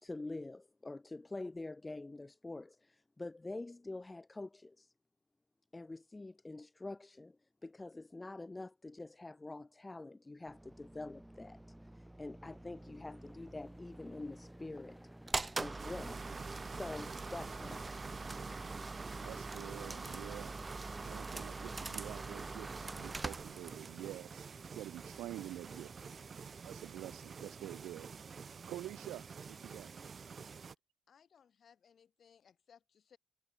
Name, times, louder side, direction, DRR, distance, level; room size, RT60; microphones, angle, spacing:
voice 1, 0.0-4.9 5.7-11.6 11.9-15.1 15.6-16.3 16.6-18.1, left 2 dB, 20° left, 1.0 m, -46 dB
sound 1, 10.4-27.4, right 1 dB, 5° right, 6.2 m, -57 dB
sound 2, 15.3-24.0, right 3 dB, 20° right, 2.6 m, -42 dB
sound 3, 15.8-30.7, right 5 dB, 40° right, 2.8 m, -49 dB
voice 2, 19.2-20.6 21.0-24.5 24.7-25.9 26.6-28.1 28.7-29.9, right 14 dB, 85° right, 2.7 m, -47 dB
voice 3, 31.1-33.2, left 7 dB, 50° left, 5.9 m, -64 dB
cardioid pair, 90°, 0 cm